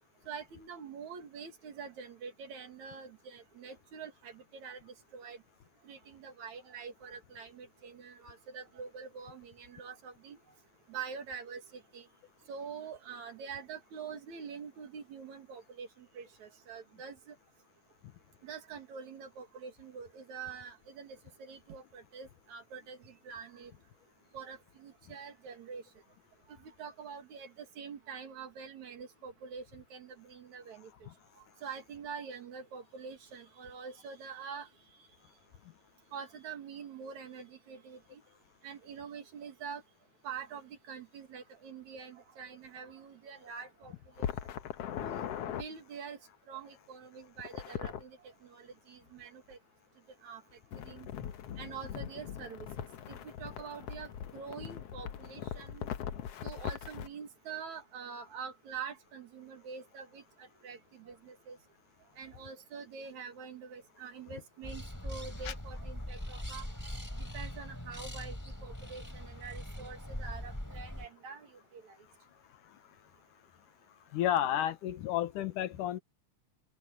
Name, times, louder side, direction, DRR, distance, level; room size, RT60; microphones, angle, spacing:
voice 1, 0.3-5.4 5.8-10.4 10.9-12.1 12.5-17.4 18.4-23.7 24.3-25.8 26.6-30.9 31.6-34.7 36.1-38.2 38.6-39.8 40.2-44.3 45.0-46.2 46.5-48.2 48.4-49.6 50.2-50.4 50.8-51.1 51.6-52.7 53.1-55.9 56.4-61.6 62.2-66.6 67.2-68.4 68.6-72.0, right 6 dB, 65° right, 3.5 m, -45 dB
sound 1, 44.2-45.6 47.4-48.0 50.7-57.1, left 9 dB, 60° left, 1.8 m, -40 dB
sound 2, 64.6-71.1, left 1 dB, 5° left, 3.8 m, -41 dB
voice 2, 74.1-76.0, left 11 dB, 85° left, 2.7 m, -31 dB
open air
omnidirectional pair, 3.6 m